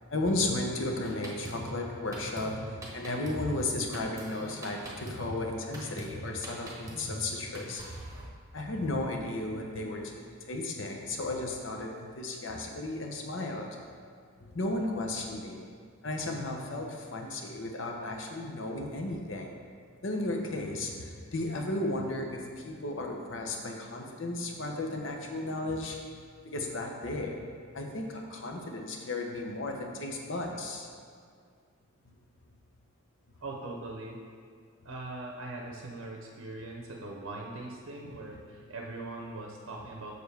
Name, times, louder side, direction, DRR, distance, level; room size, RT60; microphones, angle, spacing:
voice 1, 0.1-7.9 8.5-13.7 14.4-15.6 16.0-19.6 20.0-26.0 26.4-27.4 27.7-30.9 38.0-38.1 38.5-38.6, left 2 dB, 60° left, 1 dB, 0.8 m, -34 dB
Drum kit, 1.0-8.2, right 1 dB, 15° right, 1.0 m, -43 dB
voice 2, 33.4-34.2 34.8-40.1, right 2 dB, 70° right, 0 dB, 0.7 m, -41 dB
6.8 x 6.6 x 3.4 m, 2.1 s
head